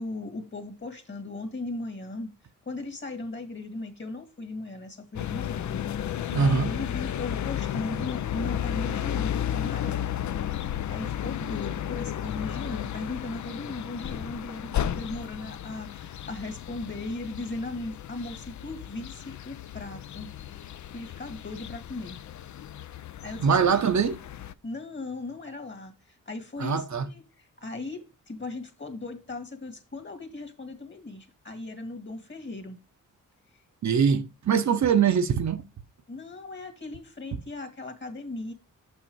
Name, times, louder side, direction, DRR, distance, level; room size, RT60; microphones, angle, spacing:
voice 1, 0.0-2.3 2.7-5.8 6.1-10.1 10.6-20.3 20.9-22.2 23.2-23.8 24.6-32.8 36.1-38.5, left 2 dB, 35° left, 1.9 m, -38 dB
sound 1, 5.1-24.5, left 10 dB, 60° left, 0.5 m, -33 dB
voice 2, 6.3-6.7 23.4-24.1 26.6-27.1 33.8-35.6, right 6 dB, 60° right, 0.7 m, -23 dB
6.4 x 5.7 x 4.5 m
cardioid pair, 80°, 32 cm